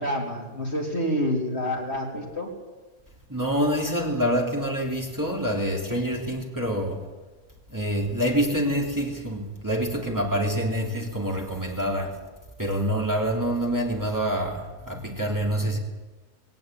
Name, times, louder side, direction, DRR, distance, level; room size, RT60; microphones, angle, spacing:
voice 1, 0.0-2.5, equal, 45° left, -1 dB, 4.1 m, -28 dB
voice 2, 3.3-7.0 7.7-12.2 12.6-15.8, equal, 15° right, -1 dB, 3.3 m, -26 dB
21.0 x 17.5 x 9.3 m, 1.2 s
omnidirectional pair, 1.5 m